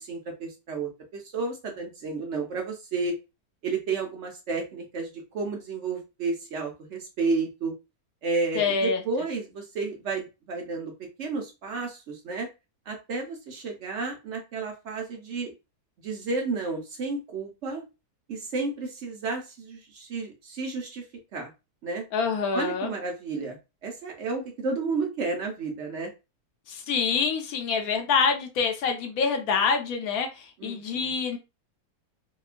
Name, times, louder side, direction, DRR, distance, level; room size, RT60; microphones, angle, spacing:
voice 1, 0.0-3.2 3.6-7.7 8.2-10.9 11.2-12.5 12.9-15.5 16.0-17.8 18.3-21.0 21.3-21.5 21.8-22.0 22.5-23.6 23.8-26.1 30.6-31.1, right 4 dB, 60° right, 0.8 m, -31 dB
voice 2, 8.6-9.0 22.1-22.9 26.7-31.4, left 5 dB, 75° left, 1.0 m, -26 dB
2.8 x 2.2 x 2.4 m
omnidirectional pair, 1.7 m